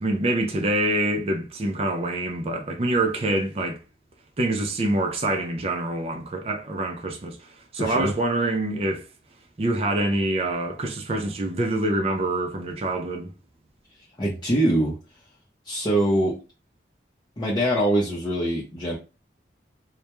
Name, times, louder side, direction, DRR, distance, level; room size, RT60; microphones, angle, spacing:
voice 1, 0.0-3.8 4.4-7.4 7.7-9.1 9.6-13.3, right 1 dB, 35° right, 0.4 m, -25 dB
voice 2, 7.8-8.1 14.2-14.9 15.7-16.4 17.4-19.0, right 1 dB, 25° left, 0.6 m, -23 dB
2.2 x 2.1 x 2.9 m
head